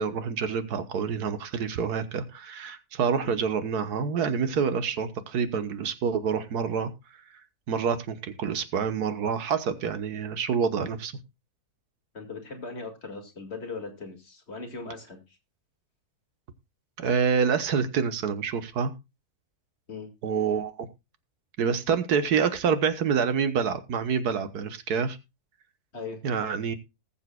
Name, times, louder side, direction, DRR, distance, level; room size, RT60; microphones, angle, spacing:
voice 1, 0.0-6.9 7.7-11.1 17.0-18.9 20.2-20.9 21.6-25.2 26.2-26.8, right 6 dB, 85° right, 11 dB, 1.6 m, -27 dB
voice 2, 12.1-15.4 19.9-20.1 25.9-26.2, left 4 dB, 45° left, 3 dB, 2.3 m, -39 dB
19.5 x 7.2 x 2.2 m, 0.24 s
omnidirectional pair, 1.6 m